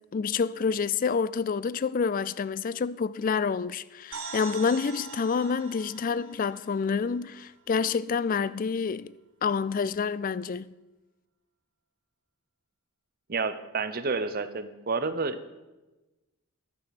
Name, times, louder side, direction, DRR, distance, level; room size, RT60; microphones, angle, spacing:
voice 1, 0.1-9.1 9.4-10.7, left 5 dB, 35° left, 0.3 m, -28 dB
sound 1, 4.1-7.7, right 5 dB, 65° right, 3.5 m, -43 dB
voice 2, 13.3-15.6, right 4 dB, 40° right, 0.7 m, -30 dB
11.5 x 8.8 x 6.8 m
head